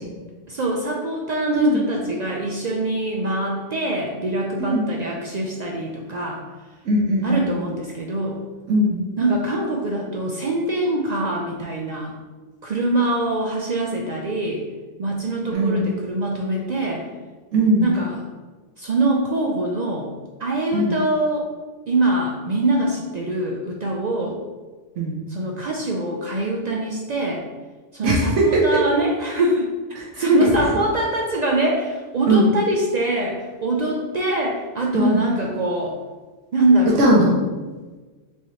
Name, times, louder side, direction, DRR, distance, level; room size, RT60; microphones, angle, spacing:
voice 1, 0.5-6.4 7.2-8.4 9.2-12.1 12.6-14.6 15.0-17.0 17.8-18.2 18.8-20.1 20.4-21.5 21.9-24.4 25.3-27.4 27.9-29.7 30.2-36.0 36.5-37.0, right 1 dB, 65° right, -1 dB, 0.4 m, -23 dB
voice 2, 6.8-7.5 8.7-9.0 15.5-15.8 17.5-17.8 20.7-20.9 25.0-25.2 28.0-28.8 29.9-30.3 32.3-32.5 34.9-35.2 37.0-37.4, right 1 dB, 85° right, -3 dB, 1.0 m, -19 dB
4.6 x 2.8 x 3.1 m, 1.3 s
omnidirectional pair, 1.2 m